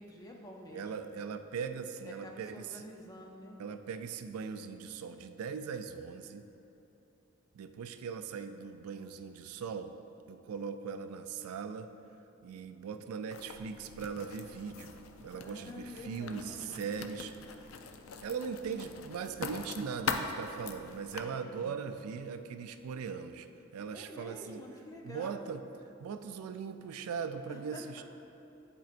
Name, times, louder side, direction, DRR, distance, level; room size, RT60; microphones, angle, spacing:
voice 1, 0.0-1.1 2.0-3.6 15.3-16.9 21.1-22.2 23.9-25.4 27.5-28.0, left 1 dB, 15° left, 0 dB, 0.5 m, -49 dB
voice 2, 0.7-2.9 3.6-6.4 7.5-9.9 10.3-11.9 12.4-17.3 18.2-23.5 23.7-24.6 25.0-25.6 26.0-28.0, right 6 dB, 90° right, 9 dB, 0.3 m, -40 dB
Writing, 13.3-21.2, left 5 dB, 65° left, 0.4 m, -42 dB
10.5 x 4.4 x 2.5 m, 2.9 s
head